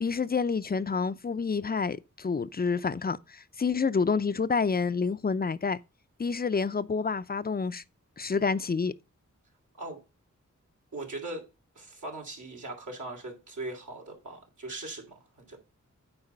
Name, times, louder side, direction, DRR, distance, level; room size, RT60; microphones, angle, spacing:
voice 1, 0.0-5.8 6.2-7.8 8.2-8.9, left 5 dB, 30° left, 0.6 m, -28 dB
voice 2, 10.9-11.4 11.7-15.6, right 2 dB, 75° right, 3.1 m, -40 dB
8.9 x 4.2 x 5.4 m
cardioid pair, 50°, 30 cm